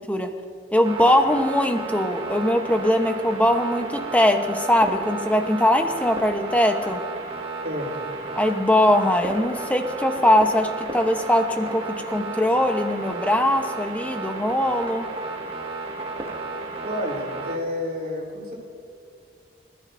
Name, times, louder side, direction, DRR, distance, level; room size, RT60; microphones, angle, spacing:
voice 1, 0.7-7.0 8.3-15.1, left 1 dB, 10° left, 5 dB, 0.8 m, -21 dB
sound 1, 0.8-17.6, right 3 dB, 30° right, 1.6 m, -33 dB
voice 2, 7.6-8.1 16.8-18.5, left 1 dB, 60° right, -3 dB, 3.5 m, -30 dB
26.0 x 13.5 x 2.6 m, 2.3 s
head